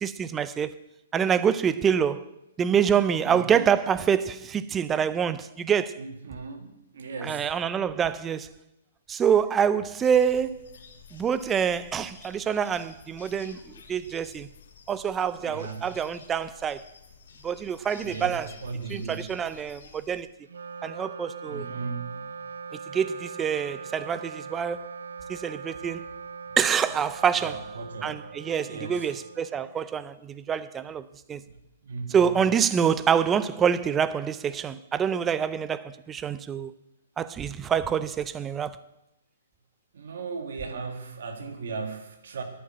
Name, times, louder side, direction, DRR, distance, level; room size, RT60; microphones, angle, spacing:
voice 1, 0.0-0.8 1.1-2.2 2.6-6.0 7.2-8.5 9.1-10.7 11.1-14.5 14.9-16.8 17.4-18.5 18.9-20.3 20.8-21.7 22.9-24.9 25.3-26.1 26.6-27.6 28.0-31.4 32.1-36.7 37.2-38.8, right 7 dB, 10° right, 0.4 m, -26 dB
voice 2, 3.2-3.8 6.0-7.5 15.4-15.9 18.0-19.4 21.4-22.3 27.4-28.3 28.7-29.1 31.5-31.6 31.8-32.4 39.9-42.4, right 4 dB, 65° right, 2.0 m, -37 dB
sound 1, 10.0-20.2, left 5 dB, 60° left, 2.4 m, -51 dB
Wind instrument woodwind instrument, 20.4-30.0, right 5 dB, 85° right, 0.4 m, -41 dB
10.5 x 8.8 x 8.9 m
hypercardioid pair, 160°, 0 cm